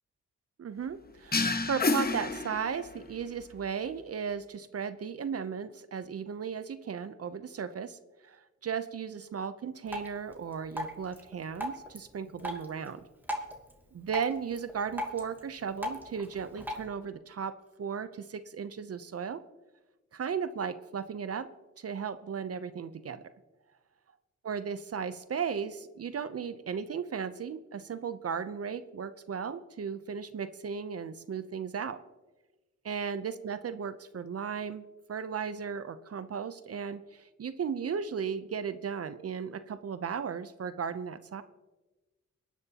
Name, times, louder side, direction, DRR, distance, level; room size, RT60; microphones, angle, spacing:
voice 1, 0.6-13.0 13.9-17.5 17.8-19.4 20.1-21.5 21.8-23.2 24.4-32.0 32.8-41.4, right 6 dB, 50° right, 12 dB, 0.7 m, -36 dB
sound 1, 1.3-3.1, left 3 dB, 30° left, 1.1 m, -29 dB
Drip, 9.9-16.9, equal, 5° right, 2.4 m, -40 dB
23.0 x 10.5 x 2.9 m, 1.1 s
cardioid pair, 75°, 30 cm